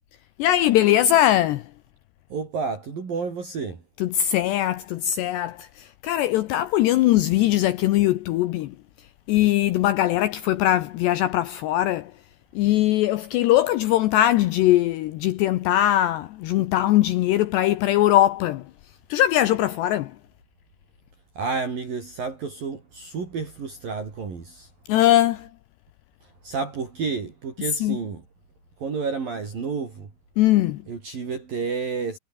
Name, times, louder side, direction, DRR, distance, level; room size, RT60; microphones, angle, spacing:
voice 1, 0.4-1.7 4.0-8.7 9.3-12.1 12.6-18.7 19.1-20.2 24.9-25.5 27.8-28.0 30.4-30.8, left 13 dB, 75° left, 2.6 m, -21 dB
voice 2, 2.3-3.8 21.4-24.7 26.4-28.2 28.8-30.1 30.9-32.2, right 5 dB, 45° right, 6.1 m, -30 dB
omnidirectional pair, 5.8 m